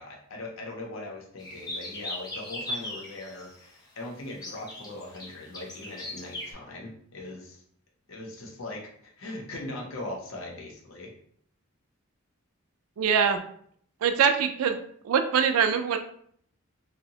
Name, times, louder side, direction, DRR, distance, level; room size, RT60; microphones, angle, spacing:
voice 1, 0.0-7.6 8.1-11.1, left 2 dB, 60° left, 0 dB, 0.6 m, -40 dB
sound 1, 1.4-3.5 4.3-6.5, left 1 dB, 20° left, 0.5 m, -38 dB
voice 2, 13.0-13.4 14.0-14.8 15.0-16.0, right 7 dB, 80° right, 7 dB, 0.3 m, -23 dB
2.7 x 2.0 x 2.7 m, 0.63 s
head